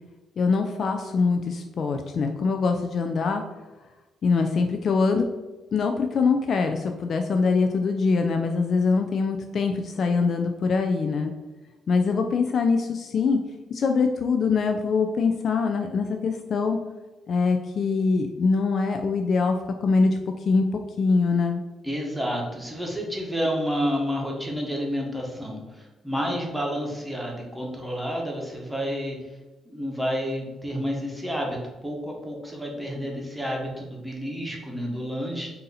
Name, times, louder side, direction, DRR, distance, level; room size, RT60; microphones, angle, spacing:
voice 1, 0.4-3.4 4.2-5.3 5.7-11.3 11.9-13.4 13.7-16.8 17.3-19.6 19.8-20.2 20.5-20.6 21.0-21.6, left 4 dB, 55° left, 5 dB, 0.3 m, -23 dB
voice 2, 21.8-29.2 29.6-31.6 31.8-35.5, equal, 5° right, -1 dB, 1.1 m, -30 dB
3.8 x 2.7 x 4.0 m, 1.2 s
cardioid pair, 90°, 0 cm